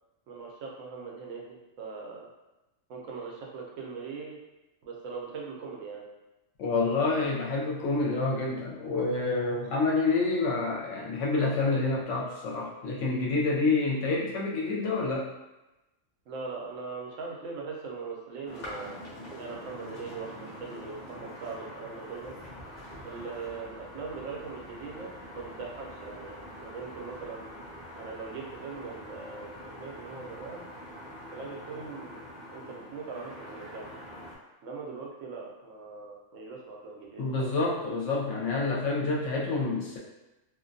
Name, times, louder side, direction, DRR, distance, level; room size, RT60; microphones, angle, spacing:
voice 1, 0.3-2.3 2.9-4.4 4.8-6.0 16.3-19.0 19.4-22.3 23.0-27.5 28.0-30.6 31.3-32.2 32.5-33.9 34.6-37.5, right 4 dB, 75° right, -2 dB, 0.9 m, -40 dB
voice 2, 6.6-15.3 37.2-40.0, left 3 dB, 70° left, -3 dB, 0.9 m, -28 dB
sound 1, 18.5-34.4, equal, 45° left, 0.6 m, -44 dB
2.4 x 2.2 x 2.5 m, 1.0 s
omnidirectional pair, 1.4 m